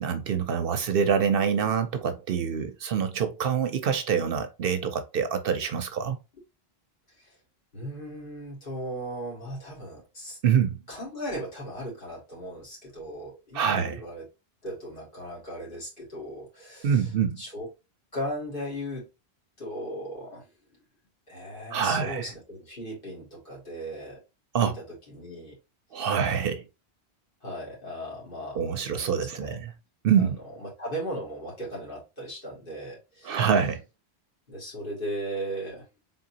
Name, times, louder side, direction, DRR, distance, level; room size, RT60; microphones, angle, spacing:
voice 1, 0.0-6.2 10.4-10.8 13.5-14.0 16.8-17.4 21.7-22.3 24.5-24.8 25.9-26.6 28.5-29.7 30.0-30.4 33.2-33.8, right 7 dB, 65° right, 0.7 m, -25 dB
voice 2, 7.7-10.4 10.9-14.3 14.6-17.1 17.4-17.7 18.1-19.1 19.6-20.5 21.3-24.2 25.1-25.6 27.4-29.7 30.6-33.4 34.5-35.8, equal, 55° left, 2.5 m, -37 dB
3.9 x 3.8 x 2.7 m
omnidirectional pair, 1.1 m